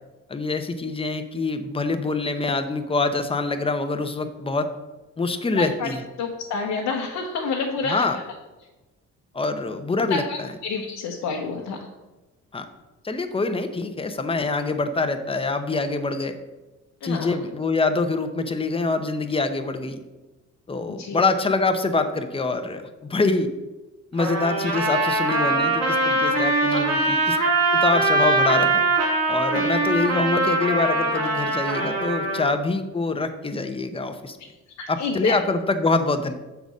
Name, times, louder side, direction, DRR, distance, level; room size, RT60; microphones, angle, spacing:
voice 1, 0.3-4.7 5.2-6.0 7.8-8.2 9.3-10.2 12.5-12.7 13.0-16.3 17.0-20.0 20.7-22.8 23.1-23.5 24.1-27.4 27.7-28.9 29.3-34.4 34.9-36.3, left 3 dB, 20° left, 8 dB, 0.7 m, -25 dB
voice 2, 5.5-5.9 6.2-8.2 10.1-11.8 17.0-17.4 20.9-21.2 26.3-26.4 26.7-26.8 29.6-29.7 34.8-35.3, left 4 dB, 75° left, 0 dB, 1.0 m, -29 dB
Trumpet, 24.2-32.5, right 2 dB, 60° right, 2.1 m, -22 dB
6.9 x 4.0 x 6.1 m, 1.1 s
cardioid pair, 90°, 30 cm